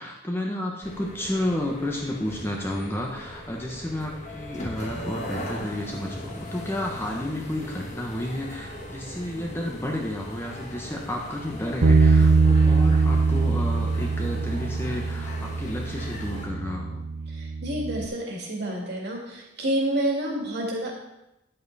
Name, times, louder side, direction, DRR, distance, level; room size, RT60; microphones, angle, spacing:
voice 1, 0.0-17.0, left 1 dB, 10° left, -1 dB, 1.0 m, -31 dB
sound 1, 0.8-16.5, equal, 35° left, 1.3 m, -39 dB
Bass guitar, 11.8-18.1, right 4 dB, 70° right, 0.6 m, -22 dB
voice 2, 17.3-20.9, right 1 dB, 50° right, -1 dB, 2.4 m, -29 dB
10.0 x 7.7 x 4.1 m, 0.91 s
head